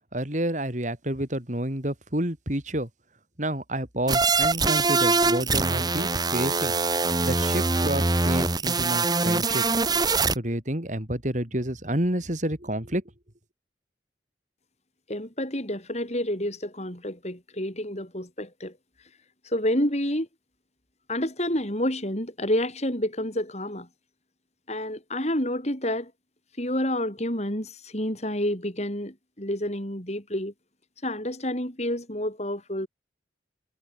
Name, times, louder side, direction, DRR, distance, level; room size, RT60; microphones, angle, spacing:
voice 1, 0.1-2.9 3.4-6.7 7.2-9.8 10.3-13.0, right 1 dB, 40° right, 4.1 m, -29 dB
sound 1, 4.1-10.3, right 3 dB, 20° right, 1.7 m, -23 dB
voice 2, 15.1-18.7 19.4-20.3 21.1-23.9 24.7-26.1 26.6-30.5 31.0-32.9, left 1 dB, 35° left, 7.9 m, -29 dB
head